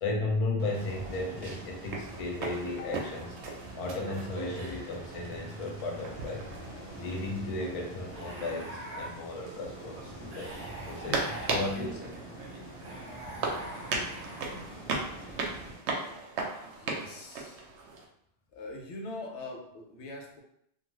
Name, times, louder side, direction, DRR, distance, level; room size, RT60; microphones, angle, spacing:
voice 1, 0.0-3.3 3.7-6.5 7.0-10.5 10.9-12.3, left 2 dB, 55° left, 0 dB, 0.4 m, -35 dB
sound 1, 0.6-18.1, right 3 dB, 70° right, 0.8 m, -38 dB
sound 2, 0.7-15.7, right 1 dB, 25° left, 0.9 m, -46 dB
vocal groaning male, 3.4-4.0 5.0-6.9 8.1-9.1 10.3-11.9 12.8-14.8, right 1 dB, 40° right, 0.9 m, -45 dB
voice 2, 16.0-17.7 18.5-20.4, left 2 dB, 75° left, 0 dB, 0.9 m, -43 dB
2.4 x 2.3 x 3.0 m, 0.71 s
omnidirectional pair, 1.2 m